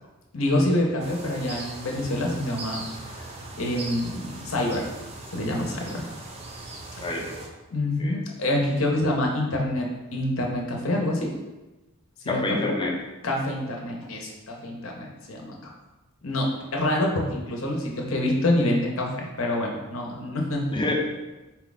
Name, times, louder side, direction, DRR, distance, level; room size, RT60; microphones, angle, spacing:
voice 1, 0.3-2.8 3.6-4.9 5.3-6.0 7.7-11.3 12.2-12.6 13.2-15.6 16.2-20.7, left 1 dB, 75° left, 0 dB, 0.8 m, -26 dB
sound 1, 1.0-7.5, right 2 dB, 30° right, 0.5 m, -39 dB
voice 2, 7.0-7.4 8.0-8.1 12.3-13.0 20.7-20.9, left 2 dB, 25° left, -1 dB, 0.6 m, -27 dB
4.1 x 2.3 x 4.0 m, 1.1 s
head